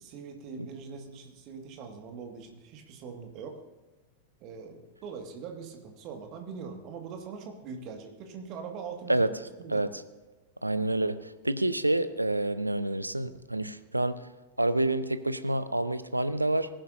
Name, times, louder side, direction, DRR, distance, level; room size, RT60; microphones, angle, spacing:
voice 1, 0.0-3.6 4.4-9.3 9.6-9.9, right 5 dB, 40° right, 4 dB, 1.9 m, -42 dB
voice 2, 10.6-14.2 14.6-16.7, right 1 dB, 85° right, 13 dB, 0.6 m, -28 dB
19.5 x 11.0 x 2.7 m, 1.2 s
figure-of-eight pair, 90°, 0 cm